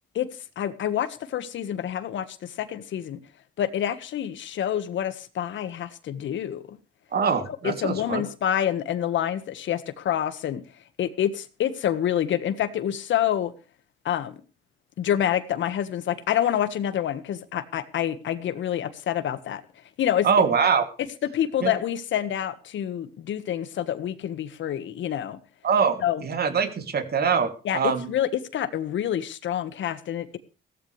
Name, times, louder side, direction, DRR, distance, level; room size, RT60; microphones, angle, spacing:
voice 1, 0.5-3.2 3.6-6.8 7.6-10.6 11.0-13.5 14.0-14.4 15.0-19.6 20.0-20.3 21.2-25.4 26.0-26.2 27.6-30.4, left 10 dB, 70° left, 12 dB, 1.6 m, -27 dB
voice 2, 7.1-8.2 20.2-20.8 21.6-21.7 25.6-28.1, right 6 dB, 50° right, 7 dB, 2.9 m, -23 dB
16.5 x 14.5 x 3.4 m, 0.35 s
cardioid pair, 90°, 20 cm